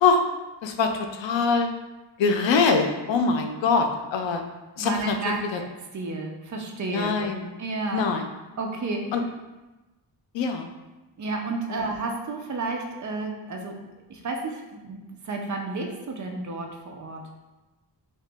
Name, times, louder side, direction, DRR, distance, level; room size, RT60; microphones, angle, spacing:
voice 1, 0.6-1.7 2.2-4.4 4.8-5.6 6.9-7.5 7.9-8.2 9.1-9.2 10.3-10.7 11.7-11.8, left 4 dB, 90° left, 5 dB, 0.5 m, -23 dB
voice 2, 4.8-5.7 5.9-7.2 7.6-8.1 8.6-9.1 11.2-13.7 14.1-15.0 15.2-17.2, right 3 dB, 45° right, 2 dB, 0.4 m, -31 dB
2.9 x 2.8 x 3.3 m, 1.1 s
wide cardioid pair, 175°, 44 cm